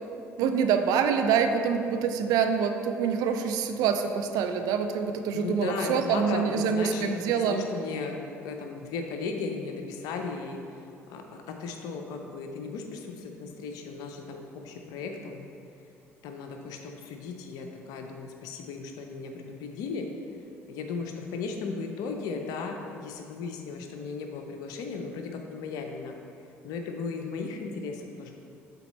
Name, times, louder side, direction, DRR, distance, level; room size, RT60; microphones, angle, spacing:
voice 1, 0.4-7.6, right 6 dB, 60° right, 7 dB, 0.4 m, -26 dB
voice 2, 5.3-15.5 16.2-20.1 20.7-26.2 26.6-28.4, left 4 dB, 60° left, 4 dB, 0.6 m, -36 dB
7.0 x 4.1 x 4.2 m, 2.6 s
figure-of-eight pair, 55°, 7 cm